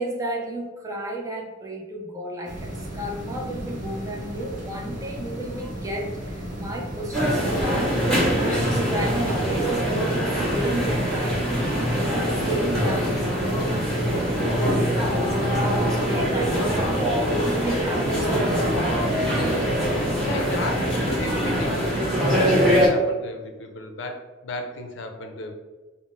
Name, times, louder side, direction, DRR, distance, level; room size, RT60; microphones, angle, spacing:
voice 1, 0.0-11.4 11.9-18.8, right 1 dB, 15° right, 0 dB, 0.4 m, -32 dB
sound 1, 2.4-21.8, equal, 45° right, 0.8 m, -35 dB
sound 2, 7.1-22.9, equal, ahead, 1.3 m, -23 dB
voice 2, 20.3-22.0 22.3-25.5, left 2 dB, 70° left, 4 dB, 0.5 m, -34 dB
3.8 x 2.0 x 2.5 m, 1.2 s
head